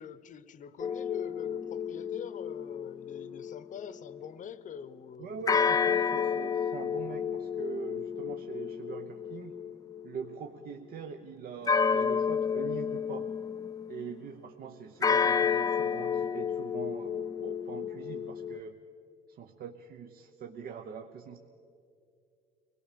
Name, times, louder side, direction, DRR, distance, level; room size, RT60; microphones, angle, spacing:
voice 1, 0.0-5.7, left 7 dB, 50° left, 0.9 m, -45 dB
sound 1, 0.8-4.2 5.5-10.4 11.7-14.1 15.0-18.6, left 6 dB, 20° left, 0.4 m, -31 dB
voice 2, 5.2-9.5 10.0-13.3 13.9-18.7 19.3-21.4, right 7 dB, 60° right, 1.0 m, -43 dB
24.0 x 18.0 x 6.9 m
cardioid pair, 110°, 17 cm